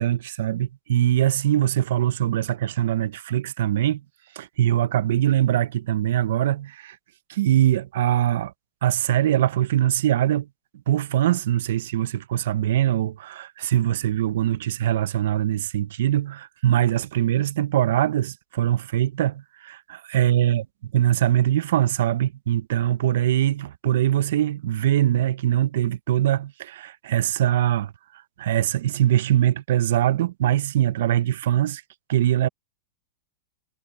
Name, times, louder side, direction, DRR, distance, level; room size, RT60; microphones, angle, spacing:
voice 1, 0.0-4.0 4.4-7.0 7.3-8.5 8.8-10.5 10.9-27.9 28.4-31.8 32.1-32.5, right 12 dB, 70° right, 0.5 m, -22 dB
supercardioid pair, 150°, 0 cm